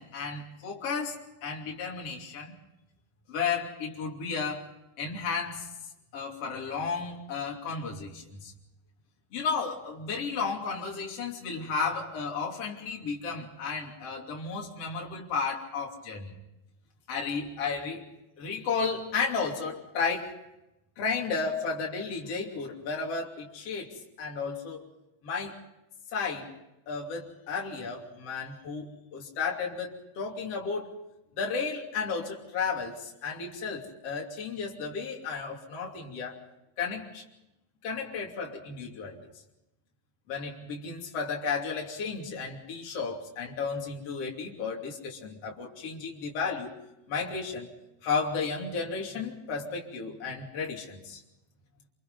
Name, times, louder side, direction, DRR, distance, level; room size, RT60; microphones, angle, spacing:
voice 1, 0.0-2.6 3.3-4.6 5.0-5.7 6.1-8.5 9.3-16.3 17.1-18.1 18.4-20.3 21.0-24.9 25.2-25.6 26.1-26.5 26.9-30.9 31.4-36.4 36.8-37.2 37.8-39.2 40.3-46.8 47.1-47.7 48.0-51.2, left 5 dB, 45° left, -1 dB, 3.8 m, -33 dB
28.0 x 26.5 x 4.0 m, 0.91 s
omnidirectional pair, 4.2 m